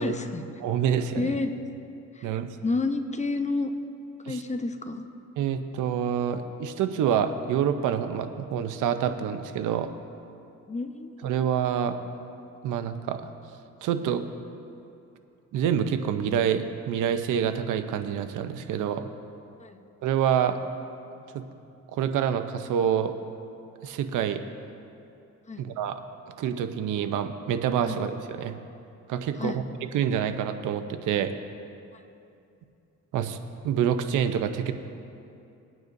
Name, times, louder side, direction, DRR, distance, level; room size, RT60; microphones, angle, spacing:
voice 1, 0.0-0.4 1.2-1.6 2.1-2.3 2.6-3.7 4.2-5.1 10.7-11.4 19.6-19.8 25.5-25.6 27.9-28.0 29.4-29.6, left 3 dB, 25° left, 7 dB, 0.8 m, -30 dB
voice 2, 0.6-1.4 2.2-2.5 4.2-4.4 5.4-9.9 11.2-12.0 12.6-13.3 13.8-14.2 15.5-19.1 20.0-20.6 21.3-21.4 21.9-23.1 23.8-24.4 25.6-26.0 26.4-28.6 29.1-29.6 29.9-31.3 33.1-33.4 33.6-34.7, right 8 dB, 85° right, 9 dB, 0.7 m, -27 dB
20.5 x 9.2 x 2.7 m, 2.6 s
cardioid pair, 90°, 30 cm